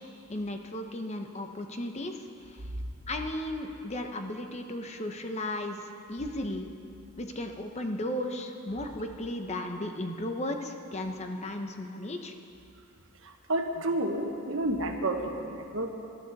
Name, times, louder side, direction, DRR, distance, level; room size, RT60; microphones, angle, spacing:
voice 1, 0.3-2.2 3.1-5.8 6.1-6.7 7.2-12.3, left 1 dB, 30° left, 5 dB, 0.9 m, -35 dB
voice 2, 13.5-15.9, right 1 dB, 65° right, 4 dB, 1.2 m, -30 dB
21.0 x 12.0 x 4.1 m, 2.6 s
head